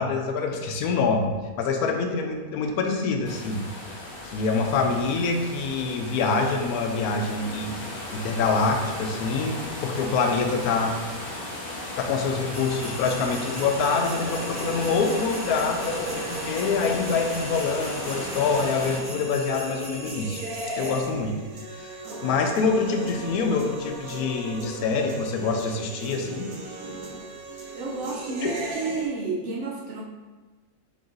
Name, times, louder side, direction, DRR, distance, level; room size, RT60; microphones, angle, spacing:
voice 1, 0.0-3.9 4.2-11.0 12.0-20.4 20.8-21.4 21.7-26.5 28.4-28.5, left 4 dB, 85° left, 4 dB, 1.1 m, -26 dB
sound 1, 3.2-19.0, left 1 dB, 50° left, 0.7 m, -36 dB
sound 2, 12.5-21.0, equal, 15° left, 0.7 m, -41 dB
sound 3, 13.1-29.1, right 2 dB, 80° right, 1.3 m, -37 dB
voice 2, 27.7-30.0, right 4 dB, 60° right, -2 dB, 0.8 m, -31 dB
4.1 x 3.0 x 3.8 m, 1.3 s
omnidirectional pair, 1.5 m